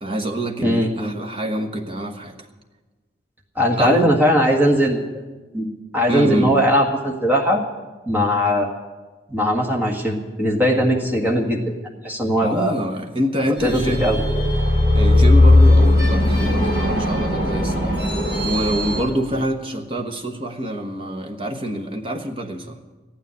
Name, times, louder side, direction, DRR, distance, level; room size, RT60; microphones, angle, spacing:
voice 1, 0.0-2.4 3.8-4.1 6.1-6.6 12.4-14.0 14.9-22.8, right 1 dB, 30° right, 4 dB, 1.2 m, -26 dB
voice 2, 0.6-1.1 3.6-5.0 5.5-5.7 5.9-7.6 8.1-8.7 9.3-11.7 12.0-12.7 13.6-14.2, equal, 10° right, 0 dB, 1.7 m, -19 dB
sound 1, 13.6-19.0, left 1 dB, 65° right, 6.8 m, -17 dB
14.5 x 9.4 x 9.5 m, 1.3 s
head